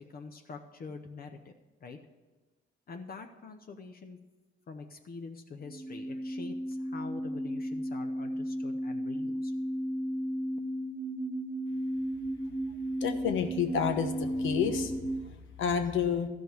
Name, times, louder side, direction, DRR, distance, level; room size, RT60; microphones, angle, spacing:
voice 1, 0.0-1.5 1.8-2.0 2.9-4.2 4.7-9.5, left 4 dB, 50° left, 5 dB, 0.8 m, -45 dB
sound 1, 5.6-15.2, equal, 10° right, 0.8 m, -34 dB
voice 2, 13.0-14.9 15.2-15.3 15.6-16.3, left 7 dB, 75° left, 7 dB, 1.1 m, -29 dB
12.5 x 5.2 x 7.8 m, 1.2 s
cardioid pair, 90°, 20 cm